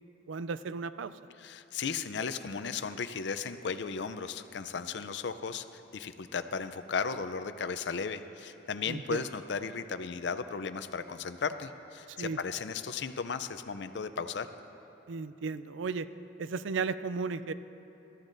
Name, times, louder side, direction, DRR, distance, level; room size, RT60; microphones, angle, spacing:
voice 1, 0.3-1.1 8.9-9.2 12.1-12.4 15.1-16.1 16.4-17.5, right 4 dB, 90° right, 14 dB, 0.4 m, -35 dB
voice 2, 1.4-14.5, left 5 dB, 70° left, 11 dB, 0.5 m, -35 dB
21.0 x 13.5 x 2.6 m, 3.0 s
head